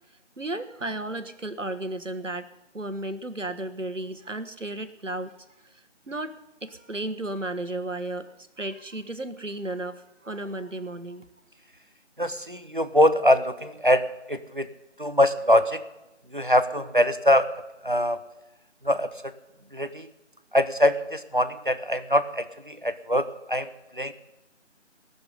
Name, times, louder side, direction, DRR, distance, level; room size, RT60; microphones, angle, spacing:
voice 1, 0.4-2.5 2.7-5.3 5.6-5.7 6.1-11.2, right 2 dB, 85° right, 11 dB, 1.5 m, -34 dB
voice 2, 12.2-14.7 15.0-15.8 16.3-17.5 17.8-18.2 18.8-19.1 19.7-20.1 20.5-24.1, equal, 45° right, 11 dB, 0.8 m, -23 dB
17.0 x 7.1 x 9.5 m, 0.97 s
figure-of-eight pair, 170°, 37 cm